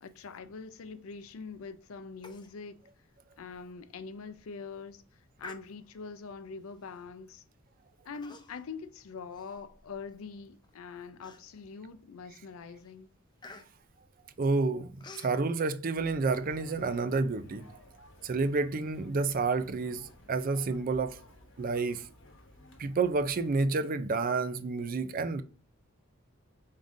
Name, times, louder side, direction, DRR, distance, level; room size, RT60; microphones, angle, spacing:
voice 1, 0.0-2.8 3.4-5.0 5.4-7.4 8.0-13.1, left 5 dB, 75° left, 0.5 m, -44 dB
Human voice, 2.2-2.6 2.9-3.0 3.5-3.6 4.2-4.4 5.4-6.1 6.9-7.1 8.1-8.7 9.1-10.1 10.6-10.7 11.2-11.8 12.3-12.5 12.8-15.4, left 3 dB, 20° left, 0.4 m, -51 dB
voice 2, 14.4-14.9 15.2-17.7 18.2-21.2 21.6-22.0 22.8-25.4, right 3 dB, 40° right, 0.4 m, -29 dB
sound 1, 15.9-23.6, left 1 dB, 60° left, 1.0 m, -56 dB
4.9 x 3.7 x 2.6 m
head